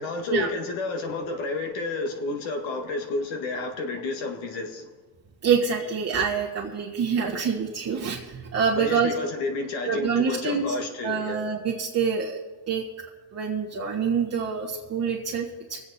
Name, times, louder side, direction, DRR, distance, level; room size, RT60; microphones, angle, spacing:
voice 1, 0.0-4.9 8.7-11.5, left 2 dB, 80° left, 4 dB, 2.1 m, -30 dB
voice 2, 5.4-9.1 9.9-10.6 11.0-12.4 12.7-12.8 13.3-15.8, right 6 dB, 35° right, -3 dB, 1.5 m, -26 dB
21.5 x 8.3 x 4.3 m, 1.4 s
cardioid pair, 130°, 45 cm